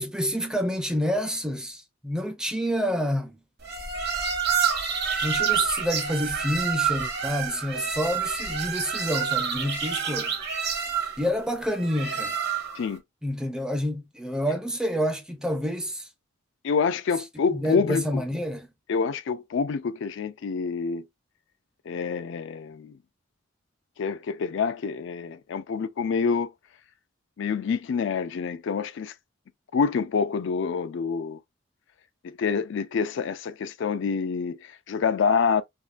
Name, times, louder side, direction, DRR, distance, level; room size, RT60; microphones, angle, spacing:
voice 1, 0.0-3.4 5.2-10.4 11.2-12.4 13.2-16.1 17.5-18.7, equal, 5° right, 0.5 m, -28 dB
sound 1, 3.6-12.9, right 7 dB, 55° right, 1.1 m, -28 dB
voice 2, 16.6-18.2 18.9-21.1 21.9-22.9 24.0-26.5 27.4-29.1 29.7-31.4 32.2-35.6, left 5 dB, 65° left, 0.4 m, -27 dB
3.6 x 3.0 x 2.5 m
head